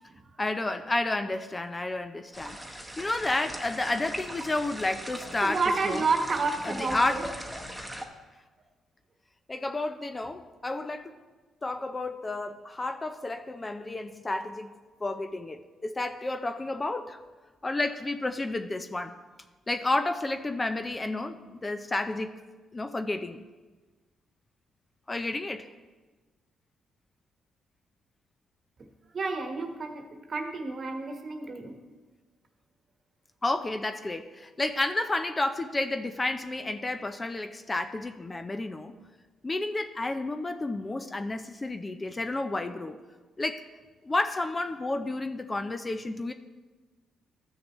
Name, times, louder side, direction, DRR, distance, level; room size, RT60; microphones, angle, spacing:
voice 1, 0.4-6.0 6.6-7.2 9.5-11.1 11.6-14.7 15.0-17.2 17.6-19.2 19.7-22.4 22.7-23.4 25.1-25.7 33.4-38.9 39.4-43.0 43.4-43.6 44.0-46.3, left 2 dB, 20° left, 8 dB, 0.4 m, -31 dB
sound 1, 2.3-8.0, equal, 5° right, 1.0 m, -40 dB
voice 2, 5.4-7.2 29.1-30.0 30.3-31.7, right 4 dB, 45° right, 4 dB, 1.2 m, -30 dB
14.0 x 6.4 x 3.1 m, 1.3 s
cardioid pair, 90°, 0 cm